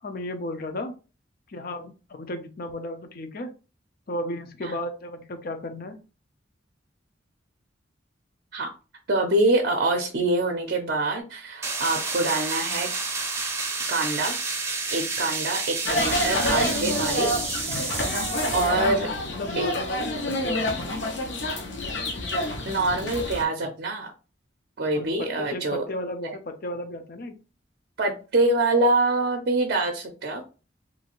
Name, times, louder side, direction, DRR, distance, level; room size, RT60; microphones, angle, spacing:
voice 1, 0.0-0.9 1.5-3.5 4.1-6.0 18.7-19.0 19.2-20.8 24.9-27.4, left 1 dB, 50° left, 7 dB, 0.5 m, -34 dB
voice 2, 9.1-12.9 13.9-14.3 14.9-17.3 18.5-19.1 19.6-19.7 22.6-24.1 24.8-25.8 26.2-26.4 28.0-30.4, right 2 dB, 55° right, 4 dB, 0.5 m, -25 dB
sound 1, 11.6-18.8, right 4 dB, 15° right, 0.6 m, -30 dB
sound 2, 15.8-23.4, left 1 dB, 75° left, 0.9 m, -28 dB
3.1 x 2.6 x 2.9 m, 0.33 s
head